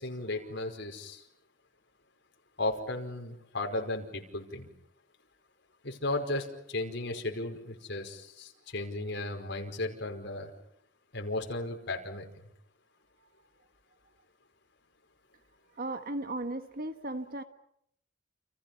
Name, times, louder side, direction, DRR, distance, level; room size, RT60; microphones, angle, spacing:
voice 1, 0.0-1.2 2.6-4.7 5.8-10.5 11.1-12.2, left 2 dB, 65° left, 3 dB, 5.2 m, -35 dB
voice 2, 15.8-17.4, right 2 dB, 50° right, 9 dB, 1.6 m, -36 dB
30.0 x 29.0 x 5.7 m, 0.74 s
head